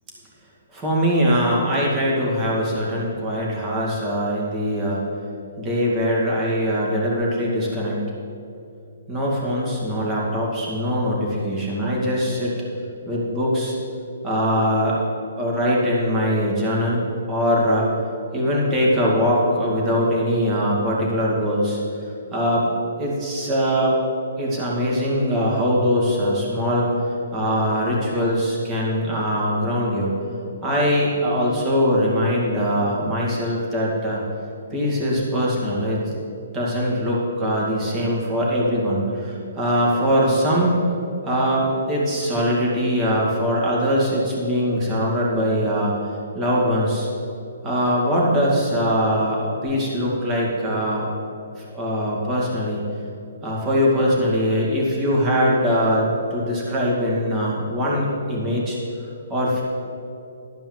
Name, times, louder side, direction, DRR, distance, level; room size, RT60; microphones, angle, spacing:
voice 1, 0.7-5.0 5.6-8.1 9.1-12.6 13.1-13.8 14.2-15.0 15.4-17.9 18.3-21.8 22.3-22.7 23.0-24.0 24.4-30.1 30.6-34.2 34.7-36.0 36.5-40.9 41.2-45.9 46.3-47.1 47.6-51.1 51.6-52.9 53.4-58.8 59.3-59.6, equal, 20° right, -4 dB, 2.4 m, -22 dB
12.0 x 5.4 x 7.6 m, 2.7 s
hypercardioid pair, 155°, 0 cm